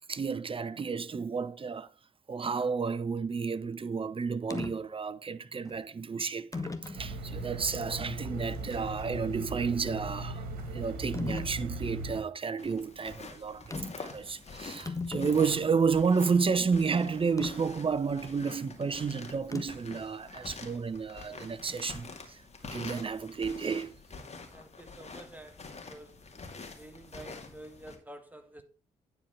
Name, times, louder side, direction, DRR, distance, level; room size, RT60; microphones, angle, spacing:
voice 1, 0.1-1.9 2.3-10.4 10.7-23.9, right 5 dB, 35° right, 0.8 m, -31 dB
sound 1, 4.5-4.7 5.6-5.8 6.5-7.0 7.7-7.8 11.1-11.5 13.7-14.1 14.4-14.5 14.7-15.8 17.4-17.5 19.5-19.9, left 3 dB, 20° left, 1.3 m, -37 dB
sound 2, 6.9-12.2, right 1 dB, 75° right, 1.6 m, -38 dB
sound 3, 12.6-28.0, left 4 dB, 45° left, 2.3 m, -47 dB
voice 2, 24.5-26.1 26.8-28.6, right 1 dB, 10° right, 2.1 m, -49 dB
9.9 x 4.6 x 5.9 m
hypercardioid pair, 45°, 15 cm